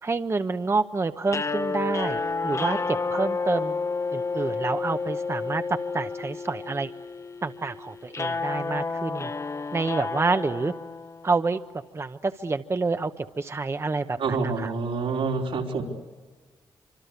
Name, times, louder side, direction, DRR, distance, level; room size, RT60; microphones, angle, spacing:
voice 1, 0.0-3.8 4.1-6.9 7.4-9.3 9.7-10.7 11.2-11.6 11.9-14.7, right 3 dB, 30° right, 9 dB, 0.9 m, -28 dB
sound 1, 1.3-11.5, left 4 dB, 30° left, 0.8 m, -30 dB
voice 2, 14.2-15.8, right 4 dB, 85° right, 0 dB, 4.6 m, -27 dB
26.0 x 24.5 x 8.3 m, 1.3 s
cardioid pair, 85°, 9 cm